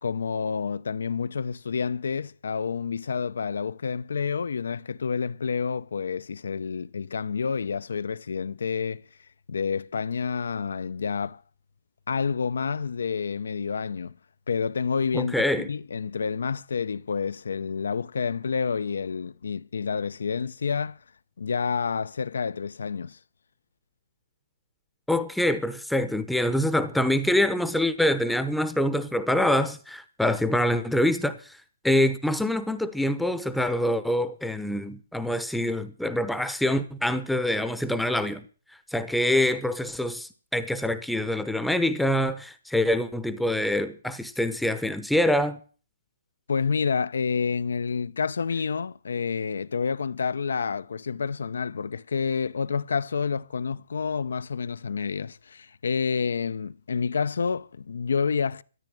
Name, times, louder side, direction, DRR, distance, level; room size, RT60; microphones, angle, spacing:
voice 1, 0.0-9.0 9.5-11.4 12.1-14.2 14.5-21.0 21.4-23.2 46.5-58.6, left 5 dB, 80° left, 0.7 m, -29 dB
voice 2, 15.1-15.7 25.1-31.6 31.8-38.5 38.9-45.6, left 1 dB, ahead, 0.8 m, -25 dB
14.0 x 9.1 x 7.6 m
hypercardioid pair, 155°, 0 cm